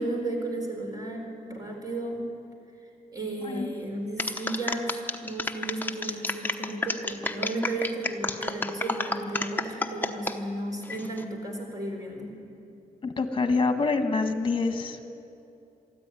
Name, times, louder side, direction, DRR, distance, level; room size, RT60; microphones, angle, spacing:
voice 1, 0.0-2.3 3.1-12.4, right 2 dB, 25° right, 2 dB, 4.3 m, -34 dB
sound 1, 4.2-10.4 10.8-11.2, left 2 dB, 15° left, 1.0 m, -30 dB
voice 2, 13.0-15.0, left 4 dB, 35° left, 7 dB, 1.5 m, -26 dB
23.5 x 13.5 x 9.7 m, 2.8 s
wide cardioid pair, 150°, 15 cm